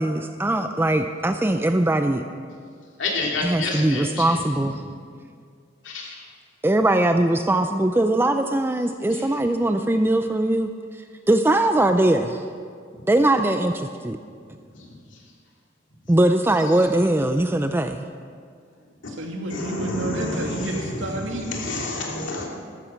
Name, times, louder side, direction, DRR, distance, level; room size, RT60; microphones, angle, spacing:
voice 1, 0.0-2.2 3.4-4.8 6.6-12.4 13.1-14.2 16.1-18.0, right 1 dB, 10° right, 7 dB, 0.4 m, -21 dB
voice 2, 3.0-4.1 5.9-6.1 19.5-20.7 21.5-22.5, left 2 dB, 70° left, -1 dB, 2.8 m, -28 dB
voice 3, 19.1-21.6, right 1 dB, 85° right, 0 dB, 2.3 m, -30 dB
13.5 x 13.0 x 5.8 m, 2.1 s
head